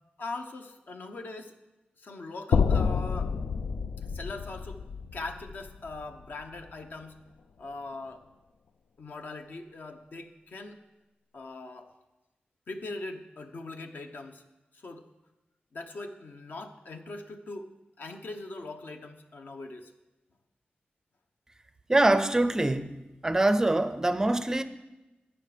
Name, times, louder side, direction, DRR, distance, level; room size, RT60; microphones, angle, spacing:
voice 1, 0.2-1.5 2.0-3.4 4.0-4.8 5.1-7.2 7.6-8.3 9.0-10.8 11.3-11.9 12.7-14.4 14.7-15.1 15.7-17.7 18.0-19.9, left 2 dB, 60° left, 1.0 m, -41 dB
sound 1, 2.5-6.7, left 5 dB, 85° left, 0.4 m, -29 dB
voice 2, 21.9-23.0 23.2-24.6, right 2 dB, 15° right, 0.5 m, -24 dB
13.0 x 9.1 x 5.0 m
wide cardioid pair, 155°, 3 cm